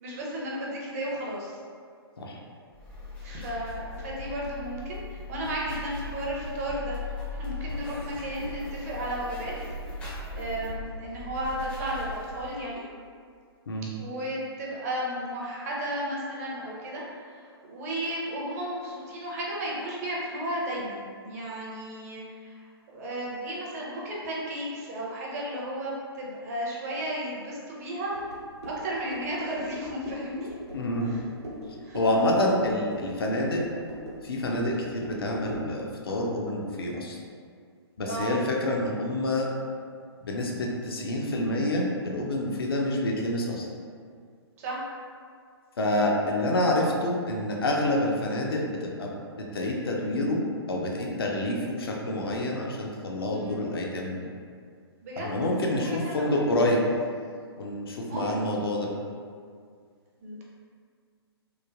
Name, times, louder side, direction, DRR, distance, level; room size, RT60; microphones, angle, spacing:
voice 1, 0.0-1.6 3.2-12.8 14.0-28.3 28.6-30.6 31.0-31.2 31.8-32.0 38.0-38.4 44.6-44.8 53.3-53.5 55.0-55.4 55.9-56.4 58.1-58.4 60.2-60.4, right 1 dB, 35° right, -4 dB, 0.6 m, -34 dB
sound 1, 2.7-12.6, left 2 dB, 10° left, 0.4 m, -38 dB
sound 2, 28.1-35.7, equal, 75° right, 0.9 m, -41 dB
voice 2, 30.7-31.2 31.9-33.6 34.2-37.2 38.0-39.5 40.2-43.7 45.8-49.1 49.5-50.4 50.7-54.2 55.2-56.8 57.6-58.9, left 1 dB, 60° left, -1 dB, 0.5 m, -27 dB
3.1 x 2.1 x 2.4 m, 2.1 s
figure-of-eight pair, 120°, 14 cm